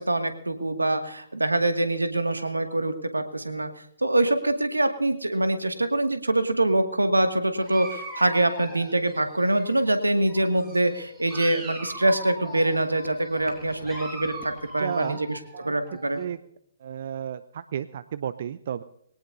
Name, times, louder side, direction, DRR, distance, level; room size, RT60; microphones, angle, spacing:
voice 1, 0.0-3.7 4.0-16.2, right 1 dB, 85° right, 7 dB, 2.1 m, -24 dB
Dog, 7.6-10.0 10.3-16.2, right 1 dB, 15° right, 6.2 m, -40 dB
voice 2, 14.8-15.2 15.5-15.7 16.2-16.4 16.8-18.8, right 9 dB, 50° right, 14 dB, 0.6 m, -33 dB
22.5 x 18.0 x 2.7 m, 0.70 s
figure-of-eight pair, 130°, 0 cm